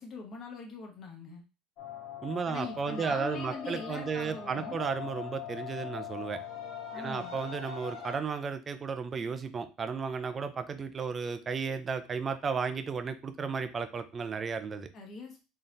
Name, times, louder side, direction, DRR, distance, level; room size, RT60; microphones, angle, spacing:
voice 1, 0.0-1.4 2.5-4.8 6.9-7.4 14.9-15.4, left 4 dB, 35° left, 2 dB, 1.1 m, -42 dB
sound 1, 1.8-8.2, left 8 dB, 65° left, 1.2 m, -42 dB
voice 2, 2.2-6.4 6.9-14.9, right 5 dB, 25° right, 9 dB, 0.4 m, -34 dB
3.8 x 3.3 x 2.6 m, 0.29 s
cardioid pair, 155°, 0 cm